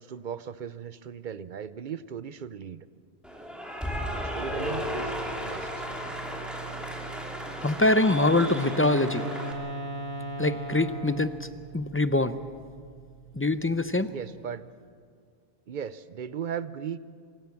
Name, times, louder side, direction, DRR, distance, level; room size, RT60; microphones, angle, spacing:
voice 1, 0.0-2.9 4.1-5.2 5.4-5.9 14.1-14.7 15.7-17.0, right 8 dB, 55° right, 15 dB, 0.8 m, -37 dB
Cheering / Applause, 3.2-9.5, equal, ahead, 2.6 m, -35 dB
sound 1, 4.4-14.6, right 1 dB, 85° left, 4.7 m, -43 dB
voice 2, 7.6-9.3 10.4-11.5 11.7-12.4 13.3-14.1, left 2 dB, 15° left, 11 dB, 0.5 m, -24 dB
Wind instrument woodwind instrument, 7.8-11.5, equal, 20° right, 3.0 m, -36 dB
26.5 x 16.0 x 7.1 m, 2.1 s
omnidirectional pair, 1.1 m